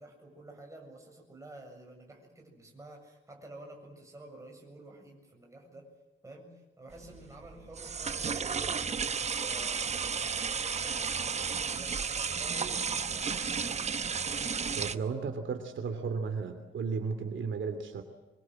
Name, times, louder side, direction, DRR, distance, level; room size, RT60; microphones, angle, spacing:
voice 1, 0.0-5.9 6.2-10.4 10.8-11.3 11.6-14.2, right 2 dB, 15° right, 1 dB, 7.4 m, -51 dB
sound 1, 6.9-14.9, right 6 dB, 35° right, 0.9 m, -33 dB
voice 2, 14.8-18.0, right 5 dB, 70° right, 6 dB, 3.0 m, -34 dB
25.5 x 23.0 x 7.7 m, 1.1 s
wide cardioid pair, 170°, 21 cm